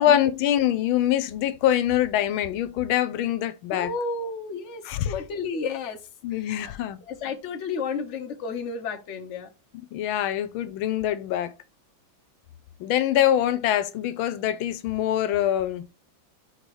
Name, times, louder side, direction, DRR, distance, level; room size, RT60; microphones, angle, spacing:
voice 1, 0.0-3.9 4.8-5.2 6.2-7.0 9.7-11.5 12.8-15.9, left 11 dB, 85° left, 1.5 m, -24 dB
voice 2, 3.7-6.0 7.1-9.5, left 4 dB, 45° left, 1.2 m, -32 dB
5.4 x 4.2 x 4.7 m
omnidirectional pair, 2.2 m